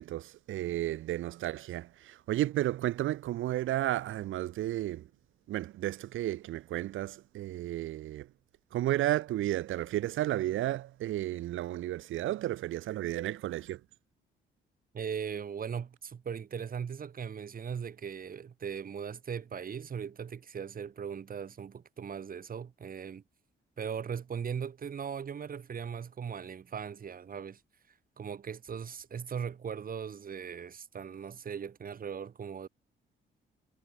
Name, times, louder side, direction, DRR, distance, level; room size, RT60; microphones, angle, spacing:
voice 1, 0.0-5.1 5.5-8.3 8.7-13.8, right 14 dB, 80° right, 1.6 m, -33 dB
voice 2, 14.9-23.2 23.8-27.6 28.2-32.7, right 7 dB, 45° right, 2.6 m, -39 dB
cardioid pair, 90°, 20 cm